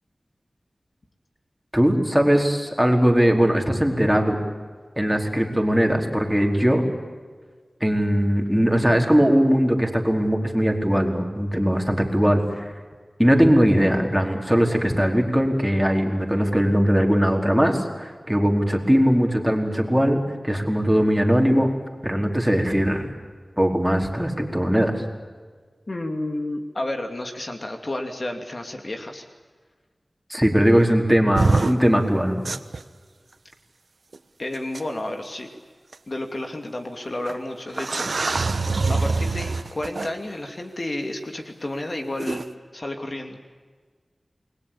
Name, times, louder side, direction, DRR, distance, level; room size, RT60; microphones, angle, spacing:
voice 1, 1.7-4.4 5.0-6.8 7.8-12.7 13.2-21.7 22.0-23.1 23.6-25.0 30.3-32.4, equal, 5° right, 2 dB, 4.5 m, -20 dB
voice 2, 25.9-29.3 34.4-35.5 36.1-38.3 38.9-42.4 42.7-43.4, left 1 dB, 50° left, 4 dB, 2.8 m, -31 dB
sound 1, 31.3-31.7 32.4-32.8 34.1-34.2 34.7-34.8 35.9-36.0 37.3-37.4 37.7-40.1 42.2-42.4, right 3 dB, 75° right, 1.1 m, -24 dB
29.0 x 21.5 x 8.7 m, 1.5 s
wide cardioid pair, 60°, 0 cm